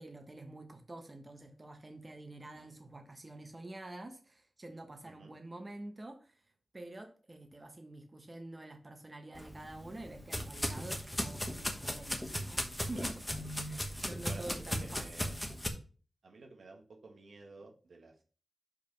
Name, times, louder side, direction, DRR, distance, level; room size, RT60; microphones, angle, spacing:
voice 1, 0.0-6.4 6.7-13.1 13.7-15.4, right 2 dB, 30° right, 5 dB, 1.0 m, -47 dB
sound 1, 9.3-15.7, equal, 10° left, 1.1 m, -37 dB
voice 2, 14.3-15.4 16.2-18.2, right 3 dB, 80° right, 2 dB, 1.3 m, -52 dB
5.4 x 5.0 x 5.1 m, 0.38 s
wide cardioid pair, 95°, 0 cm